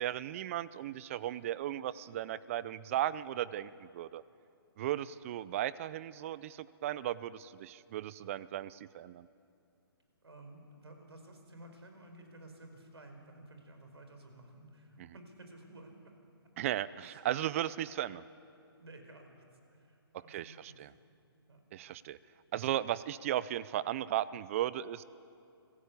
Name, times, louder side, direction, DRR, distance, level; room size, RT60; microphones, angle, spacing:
voice 1, 0.0-4.2 4.8-9.3 16.6-18.2 20.3-20.9 21.7-22.2 22.5-25.0, right 12 dB, 30° right, 19 dB, 0.5 m, -36 dB
voice 2, 10.2-15.9 17.0-17.2 17.5-17.6 18.8-19.3 19.7-20.8 21.5-21.6, right 1 dB, 85° right, 5 dB, 4.8 m, -54 dB
26.5 x 14.5 x 8.3 m, 2.5 s
hypercardioid pair, 145°, 13 cm